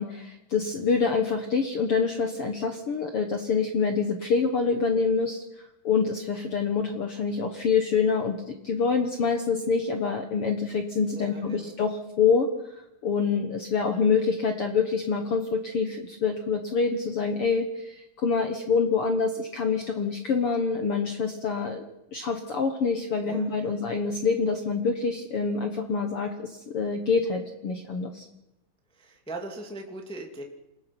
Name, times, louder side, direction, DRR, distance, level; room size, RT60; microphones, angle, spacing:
voice 1, 0.0-5.4 5.8-21.8 22.1-28.3, left 5 dB, 55° left, 5 dB, 1.7 m, -26 dB
voice 2, 11.1-11.7 23.3-23.8 28.9-30.4, right 2 dB, ahead, 1 dB, 1.9 m, -40 dB
28.0 x 18.0 x 6.1 m, 0.89 s
omnidirectional pair, 3.9 m